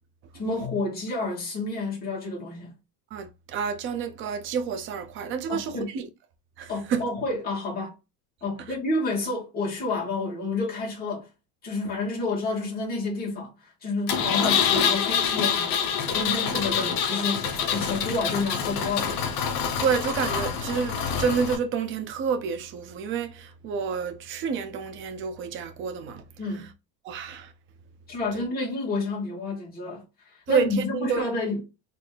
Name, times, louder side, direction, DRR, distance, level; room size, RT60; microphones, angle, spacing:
voice 1, 0.4-2.7 5.5-5.9 6.7-8.0 8.4-11.3 11.6-19.2 26.4-26.7 28.1-30.0 30.5-31.6, left 3 dB, 20° left, 2.0 m, -30 dB
voice 2, 3.1-6.1 6.6-7.0 8.6-8.7 19.8-26.2 26.5-26.7 27.0-27.5 28.3-28.4 30.5-31.2, right 6 dB, 25° right, 0.5 m, -29 dB
Engine, 14.1-21.6, left 7 dB, 45° left, 1.0 m, -26 dB
4.2 x 3.3 x 3.3 m
supercardioid pair, 160°, 49 cm